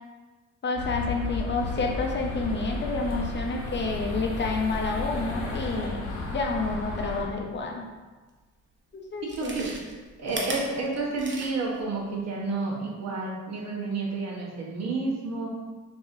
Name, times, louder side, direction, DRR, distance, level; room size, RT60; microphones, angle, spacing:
voice 1, 0.6-6.1 6.3-7.8 8.9-9.6, left 3 dB, 40° left, 1 dB, 0.5 m, -29 dB
sound 1, 0.8-7.2, left 3 dB, 80° left, 0.8 m, -33 dB
Chewing mastication, 8.4-8.5 9.2-11.8 12.2-12.3, right 2 dB, 40° right, 0.7 m, -37 dB
voice 2, 9.2-9.7 10.2-15.5, right 3 dB, 60° right, -3 dB, 1.1 m, -30 dB
4.7 x 2.7 x 2.6 m, 1.3 s
cardioid pair, 90°, 30 cm